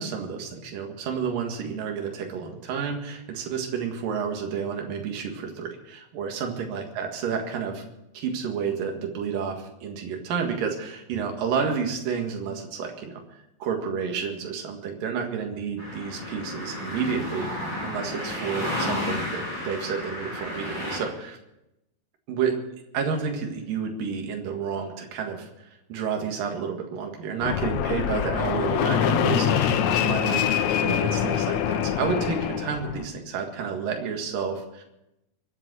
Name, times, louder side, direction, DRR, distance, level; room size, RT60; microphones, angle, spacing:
voice 1, 0.0-7.8 8.1-13.2 13.6-17.5 17.8-21.4 22.3-22.5 22.9-34.8, right 6 dB, 70° right, 3 dB, 3.4 m, -30 dB
sound 1, 15.8-21.0, left 1 dB, 45° right, 9.1 m, -32 dB
Fixed-wing aircraft airplane, 27.4-33.0, left 9 dB, 70° left, 1.7 m, -24 dB
23.5 x 7.9 x 6.3 m, 0.88 s
omnidirectional pair, 4.2 m